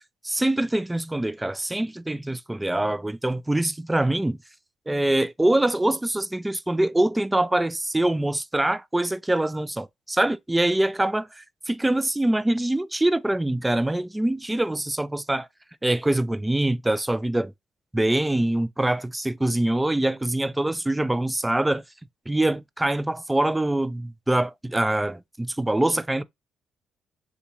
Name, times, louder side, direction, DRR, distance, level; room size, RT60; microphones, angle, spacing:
voice 1, 0.2-4.4 4.9-15.5 15.8-17.5 17.9-21.8 22.3-26.2, right 1 dB, 10° right, 0.3 m, -24 dB
3.6 x 2.4 x 2.8 m
cardioid pair, 90°, 0 cm